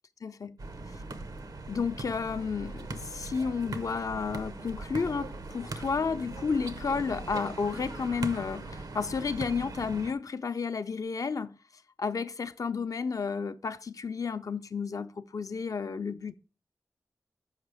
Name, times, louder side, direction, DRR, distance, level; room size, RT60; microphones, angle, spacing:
voice 1, 0.2-0.6 0.9-1.0 1.7-11.6 12.0-16.3, left 5 dB, 60° left, 0.5 m, -32 dB
sound 1, 0.6-10.1, right 3 dB, 80° right, 0.8 m, -40 dB
6.4 x 5.1 x 4.8 m
wide cardioid pair, 70°, 6 cm